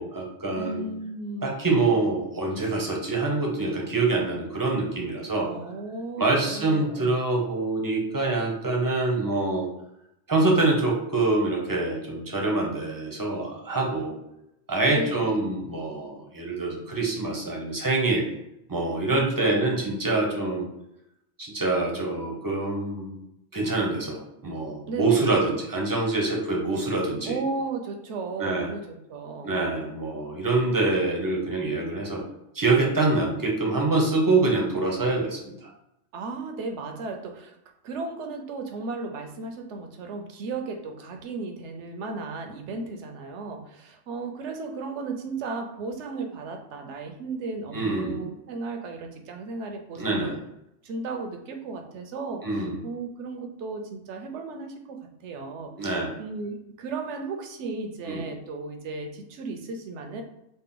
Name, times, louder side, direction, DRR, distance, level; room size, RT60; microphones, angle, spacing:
voice 1, 0.0-0.8 1.4-5.5 6.2-9.7 10.3-14.1 14.7-18.2 18.7-20.7 21.4-23.2 23.5-27.4 28.4-28.7 29.4-32.2 32.5-35.7 47.7-48.3 50.0-50.4 52.4-52.8 55.8-56.2 58.1-58.2, right 2 dB, 25° right, -1 dB, 0.6 m, -25 dB
voice 2, 0.6-1.5 5.5-7.1 14.9-15.4 19.1-19.8 24.9-25.4 27.3-29.5 36.1-37.6 37.8-50.3 50.8-60.2, right 3 dB, 75° right, 4 dB, 0.9 m, -35 dB
4.1 x 2.1 x 3.7 m, 0.82 s
omnidirectional pair, 1.2 m